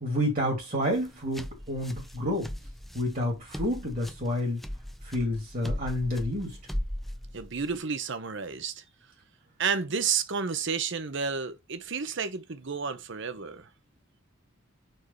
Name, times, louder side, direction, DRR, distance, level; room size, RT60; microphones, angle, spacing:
voice 1, 0.0-2.5 2.9-4.6 5.0-6.6, left 1 dB, 40° right, 2.0 m, -29 dB
sound 1, 0.8-7.8, equal, ahead, 0.4 m, -38 dB
voice 2, 7.3-8.8 9.6-13.7, right 6 dB, 60° right, 0.8 m, -31 dB
4.7 x 4.6 x 5.5 m
head